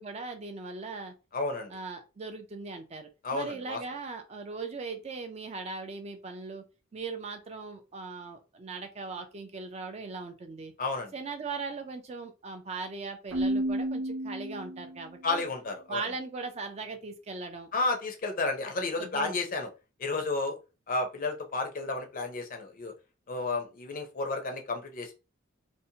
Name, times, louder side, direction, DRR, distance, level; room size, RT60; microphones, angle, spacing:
voice 1, 0.0-1.1 1.7-6.6 6.9-10.7 11.1-15.4 15.9-17.7 19.0-19.4, right 4 dB, 30° right, 5 dB, 0.4 m, -39 dB
voice 2, 1.3-1.7 3.2-3.8 10.8-11.1 15.2-16.0 17.7-19.7 20.0-20.6 20.9-22.9 23.3-25.1, left 3 dB, 40° left, 4 dB, 0.5 m, -32 dB
Keyboard (musical), 13.3-15.1, right 1 dB, 90° right, 0.6 m, -31 dB
2.6 x 2.1 x 2.7 m, 0.30 s
head